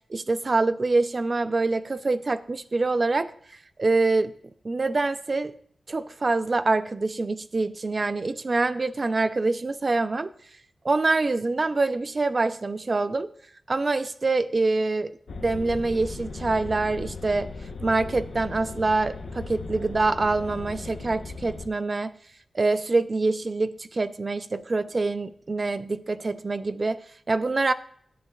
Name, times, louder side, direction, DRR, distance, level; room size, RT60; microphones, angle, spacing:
voice 1, 0.1-3.3 3.8-4.3 4.6-5.5 5.9-10.3 10.8-13.3 13.7-17.5 17.8-22.2 22.5-27.7, right 3 dB, 40° right, 12 dB, 0.6 m, -25 dB
sound 1, 15.3-21.7, left 4 dB, 85° left, 1.0 m, -37 dB
17.0 x 9.5 x 2.4 m, 0.64 s
wide cardioid pair, 100°, 0 cm